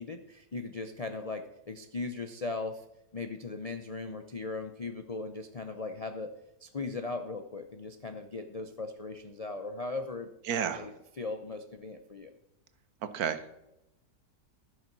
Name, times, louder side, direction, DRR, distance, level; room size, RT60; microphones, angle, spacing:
voice 1, 0.0-2.8 3.1-6.3 6.6-10.3 10.7-12.3, left 3 dB, 75° left, 7 dB, 0.3 m, -38 dB
voice 2, 10.5-10.9 13.0-13.6, right 8 dB, 65° right, 12 dB, 1.3 m, -32 dB
14.5 x 6.3 x 6.0 m, 0.89 s
omnidirectional pair, 1.8 m